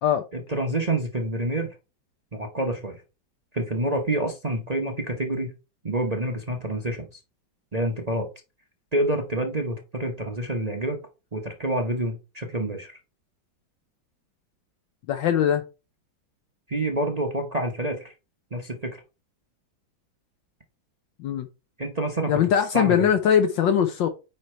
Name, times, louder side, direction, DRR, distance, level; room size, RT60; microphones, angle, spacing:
voice 1, 0.3-1.7 2.3-3.0 3.5-5.5 5.8-7.1 7.7-8.3 8.9-11.0 11.3-13.0 16.7-18.1 18.5-19.0 21.8-22.4 22.7-23.1, right 1 dB, 40° right, 0.5 m, -27 dB
voice 2, 15.1-15.6 21.2-21.5 22.3-24.1, left 9 dB, 75° left, 1.4 m, -21 dB
9.3 x 3.3 x 4.3 m
omnidirectional pair, 2.1 m